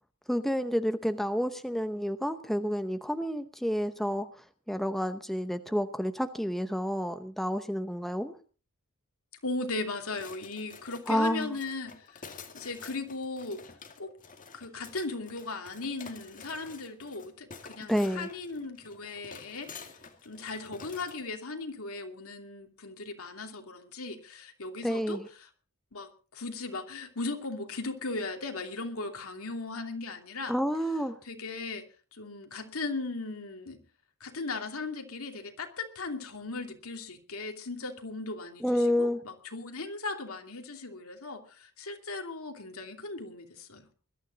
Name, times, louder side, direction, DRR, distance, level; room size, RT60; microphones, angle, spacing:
voice 1, 0.3-4.3 4.7-8.4 11.1-11.5 17.9-18.3 24.8-25.3 30.5-31.2 38.6-39.2, equal, ahead, 8 dB, 0.8 m, -29 dB
voice 2, 9.4-13.6 14.0-14.1 14.5-19.7 20.2-25.2 25.9-30.5 31.2-31.8 32.1-33.8 34.2-43.9, left 3 dB, 70° left, 4 dB, 2.7 m, -37 dB
sound 1, 10.1-21.3, left 5 dB, 40° left, 2.2 m, -49 dB
21.0 x 12.5 x 4.0 m, 0.37 s
head